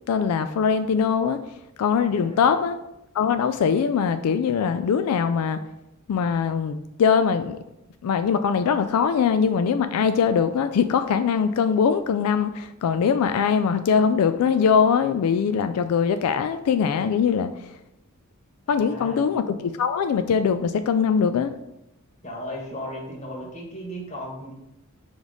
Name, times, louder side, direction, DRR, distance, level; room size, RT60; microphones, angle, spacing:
voice 1, 0.1-1.4 1.8-2.8 3.1-5.6 6.1-7.6 8.0-17.5 18.7-21.5, left 6 dB, 90° left, 9 dB, 0.3 m, -22 dB
voice 2, 2.0-2.5 18.7-19.3 22.2-24.5, equal, 30° left, -2 dB, 1.6 m, -36 dB
5.0 x 4.0 x 4.8 m, 0.90 s
head